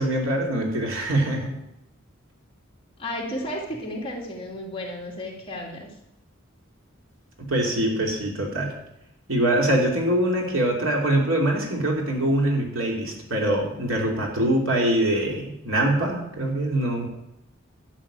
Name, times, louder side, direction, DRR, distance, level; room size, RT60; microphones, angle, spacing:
voice 1, 0.0-1.6 7.4-8.7 9.3-17.1, right 1 dB, 80° right, 0 dB, 3.0 m, -23 dB
voice 2, 3.0-5.9, left 1 dB, 25° left, -2 dB, 2.8 m, -33 dB
11.5 x 6.3 x 8.9 m, 0.84 s
head